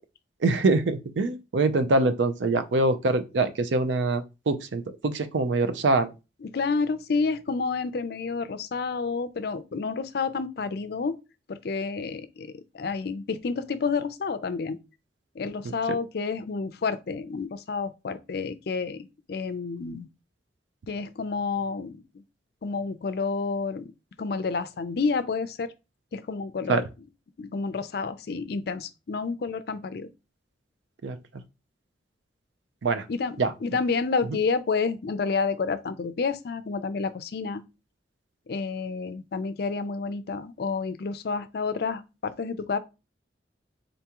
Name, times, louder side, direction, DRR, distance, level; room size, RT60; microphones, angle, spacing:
voice 1, 0.4-6.1 26.7-26.8 31.0-31.2 32.8-33.1 33.4-33.5 34.3-34.4, right 3 dB, 90° right, 0.5 m, -24 dB
voice 2, 6.4-11.2 11.5-14.8 15.3-20.1 20.9-22.0 22.6-23.9 24.2-25.7 26.1-26.8 27.4-30.1 33.1-37.6 38.5-42.8, left 4 dB, 60° left, 0.4 m, -29 dB
3.9 x 3.5 x 2.9 m
head